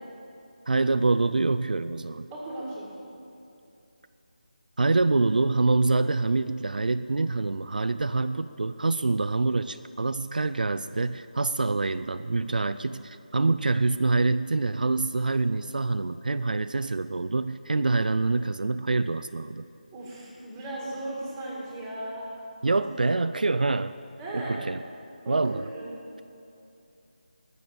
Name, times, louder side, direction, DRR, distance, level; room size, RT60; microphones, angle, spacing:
voice 1, 0.7-2.3 4.8-19.6 22.6-23.9 24.3-24.8 25.3-25.7, right 3 dB, 75° right, 10 dB, 0.5 m, -26 dB
voice 2, 2.3-2.9 19.9-22.3 22.7-22.9 24.2-24.6 25.2-26.0, right 1 dB, 5° right, -5 dB, 1.9 m, -36 dB
20.5 x 7.1 x 7.9 m, 2.7 s
figure-of-eight pair, 170°, 5 cm